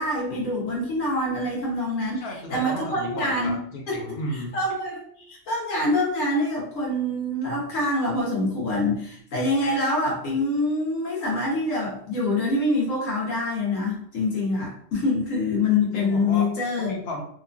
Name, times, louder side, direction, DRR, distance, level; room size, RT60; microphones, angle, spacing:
voice 1, 0.0-2.2 2.5-3.6 3.9-4.0 4.5-5.0 5.3-16.9, left 2 dB, 85° left, -3 dB, 1.3 m, -25 dB
voice 2, 2.1-4.6 15.9-16.5 16.8-17.2, left 1 dB, 60° left, 0 dB, 0.8 m, -34 dB
2.9 x 2.3 x 2.5 m, 0.63 s
omnidirectional pair, 1.3 m